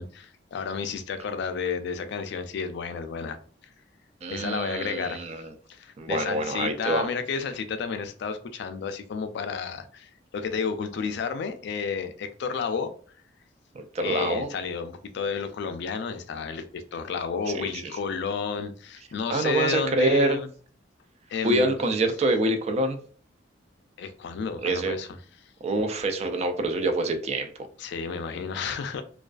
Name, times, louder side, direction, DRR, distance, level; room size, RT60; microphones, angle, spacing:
voice 1, 0.0-3.4 4.3-5.3 5.7-12.9 14.0-20.5 21.3-21.7 24.0-25.1 27.8-29.0, left 5 dB, 65° left, 9 dB, 0.3 m, -31 dB
voice 2, 4.2-5.5 6.0-7.1 13.7-14.5 17.5-17.8 19.3-20.4 21.4-23.0 24.6-25.0 25.6-27.5, right 2 dB, 35° right, 7 dB, 0.3 m, -26 dB
2.3 x 2.3 x 2.3 m, 0.44 s
head